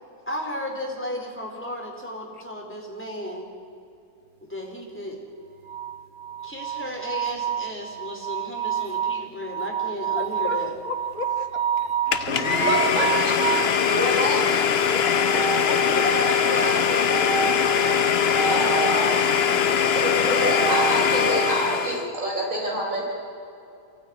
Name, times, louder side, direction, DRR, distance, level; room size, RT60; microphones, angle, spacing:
voice 1, 0.3-3.4 4.4-5.2 6.4-10.7 15.3-17.9, equal, 10° left, -1 dB, 4.1 m, -33 dB
sound 1, 5.7-13.8 15.0-16.3 17.1-19.0 20.2-21.6, right 8 dB, 40° right, 0.9 m, -29 dB
voice 2, 10.2-12.0 13.7-13.8 14.9-16.0, left 5 dB, 70° left, 6 dB, 2.0 m, -35 dB
Domestic sounds home sounds, 12.1-22.1, left 7 dB, 50° left, 1.0 m, -22 dB
voice 3, 12.3-13.3 13.9-14.4 18.5-19.3 19.9-23.0, equal, 60° right, -2 dB, 4.8 m, -27 dB
24.5 x 15.5 x 9.5 m, 2.7 s
omnidirectional pair, 1.6 m